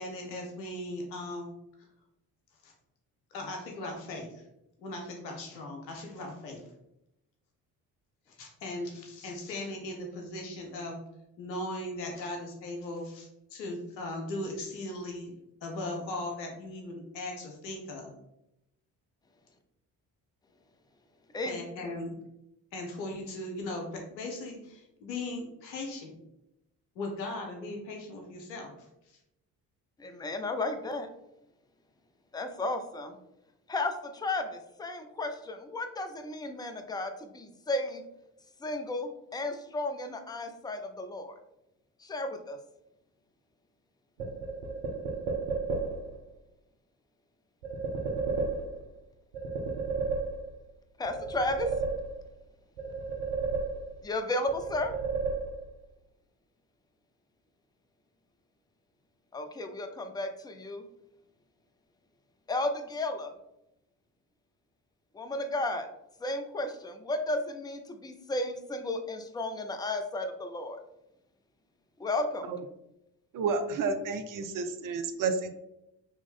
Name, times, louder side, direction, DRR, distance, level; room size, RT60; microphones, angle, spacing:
voice 1, 0.0-1.5 2.6-2.7 3.3-4.4 4.8-6.6 8.3-11.0 11.4-15.3 15.6-18.1 21.4-22.2 22.7-26.1 27.0-28.7, left 2 dB, 85° left, 1 dB, 0.9 m, -38 dB
voice 2, 30.0-31.1 32.3-33.2 33.7-38.0 38.6-41.3 42.0-42.6 51.0-51.7 54.0-54.9 59.3-60.8 62.5-63.3 65.1-65.9 66.2-70.8 72.0-72.5, left 2 dB, 10° left, 7 dB, 0.5 m, -33 dB
sound 1, 44.2-46.2 47.6-49.0 49.3-50.7 51.0-52.4 52.8-54.1 54.5-55.8, right 4 dB, 75° right, 0.9 m, -33 dB
voice 3, 73.3-75.5, right 4 dB, 40° right, 8 dB, 0.6 m, -30 dB
4.1 x 3.0 x 3.7 m, 0.85 s
figure-of-eight pair, 40°, 50 cm